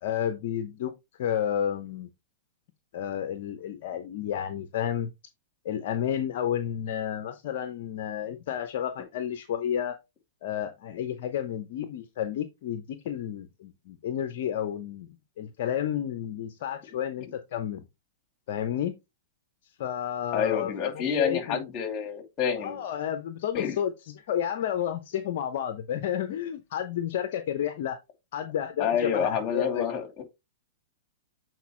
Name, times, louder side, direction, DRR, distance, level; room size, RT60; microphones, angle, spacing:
voice 1, 0.0-0.9 1.2-2.1 2.9-5.1 5.6-10.0 10.4-15.1 15.4-17.8 18.5-18.9 19.8-21.6 22.6-28.0 28.3-29.8, left 10 dB, 55° left, 0.8 m, -31 dB
voice 2, 20.3-22.8 23.5-23.8 28.8-30.2, left 7 dB, 35° left, 2.8 m, -28 dB
8.2 x 4.5 x 3.2 m
hypercardioid pair, 110°, 0 cm